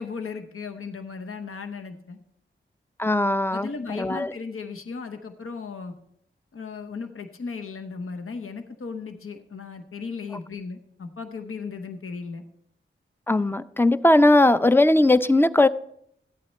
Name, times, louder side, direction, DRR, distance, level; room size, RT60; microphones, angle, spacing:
voice 1, 0.0-2.2 3.5-5.9 6.5-12.4, left 5 dB, 85° left, 0.9 m, -36 dB
voice 2, 3.0-4.3 13.3-15.7, left 2 dB, 10° left, 0.5 m, -19 dB
12.5 x 8.7 x 4.2 m
cardioid pair, 40°, 21 cm